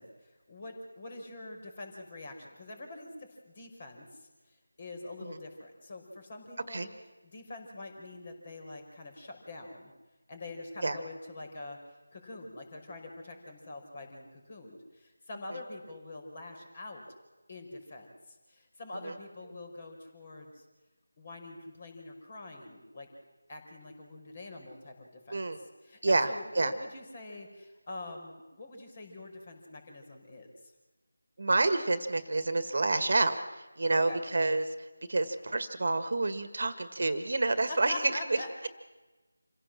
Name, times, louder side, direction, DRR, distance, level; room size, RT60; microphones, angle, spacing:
voice 1, 0.0-6.9 7.2-9.9 10.3-11.8 12.1-17.0 17.5-20.7 21.2-23.1 23.5-25.4 25.8-30.7 33.9-34.2 37.7-38.7, left 2 dB, 35° left, 3 dB, 5.3 m, -45 dB
voice 2, 31.4-38.0, right 2 dB, 50° right, 10 dB, 1.8 m, -29 dB
27.5 x 16.5 x 7.6 m, 1.2 s
figure-of-eight pair, 165°, 0 cm